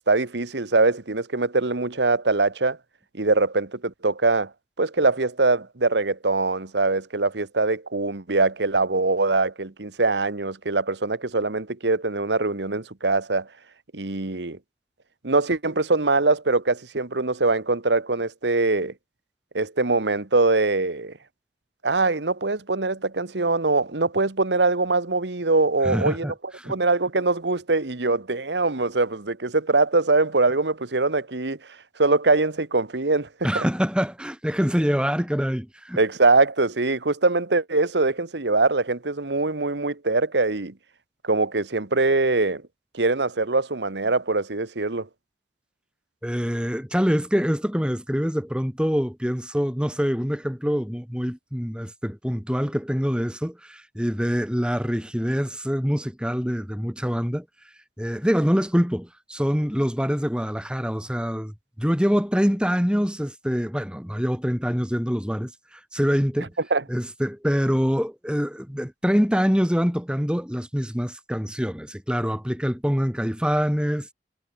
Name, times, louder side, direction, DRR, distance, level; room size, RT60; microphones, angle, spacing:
voice 1, 0.0-2.8 3.1-4.5 4.8-13.5 13.9-14.6 15.2-18.9 19.5-21.1 21.8-26.3 26.6-31.6 32.0-33.3 33.5-33.6 36.0-40.7 41.2-42.6 42.9-45.1 66.7-66.8, right 3 dB, 85° right, 1.5 m, -22 dB
voice 2, 25.8-26.3 26.6-26.8 33.4-36.0 46.2-57.5 58.0-66.5 66.9-74.1, equal, 5° right, 3.8 m, -25 dB
head